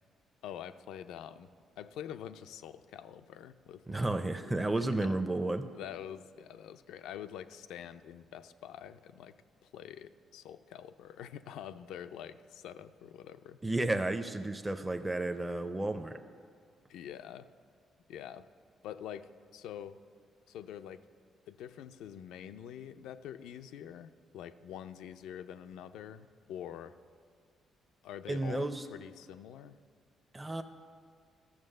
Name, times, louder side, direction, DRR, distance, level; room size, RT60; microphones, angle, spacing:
voice 1, 0.4-1.5 1.8-4.2 4.4-5.2 5.7-9.4 9.6-13.6 16.9-17.5 18.1-18.4 18.8-20.0 20.5-21.0 21.5-26.9 28.0-29.8, left 9 dB, 85° left, 11 dB, 0.4 m, -46 dB
voice 2, 3.9-5.7 13.6-16.2 28.3-28.8 30.3-30.6, right 2 dB, 15° right, 8 dB, 0.5 m, -32 dB
13.0 x 6.9 x 6.5 m, 2.2 s
cardioid pair, 90°, 0 cm